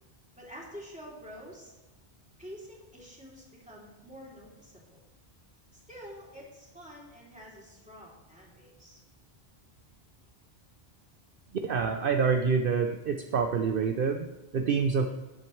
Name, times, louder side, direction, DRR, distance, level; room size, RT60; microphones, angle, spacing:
voice 1, 0.3-1.7 2.4-5.0 5.7-9.0, equal, 5° right, -4 dB, 2.9 m, -48 dB
voice 2, 11.6-15.1, right 5 dB, 60° right, 6 dB, 0.8 m, -27 dB
19.5 x 7.7 x 3.2 m, 1.1 s
omnidirectional pair, 1.1 m